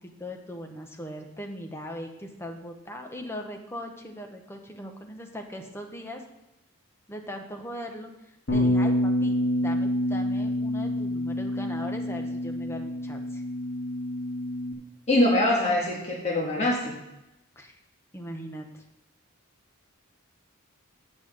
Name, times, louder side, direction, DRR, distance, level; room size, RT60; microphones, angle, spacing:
voice 1, 0.0-6.2 7.1-13.4 17.6-17.8 18.1-18.8, equal, 10° left, 3 dB, 1.0 m, -39 dB
Bass guitar, 8.5-14.7, left 1 dB, 55° left, 2.2 m, -27 dB
voice 2, 15.1-16.9, left 1 dB, 30° left, -4 dB, 1.6 m, -23 dB
8.2 x 5.6 x 6.3 m, 0.93 s
head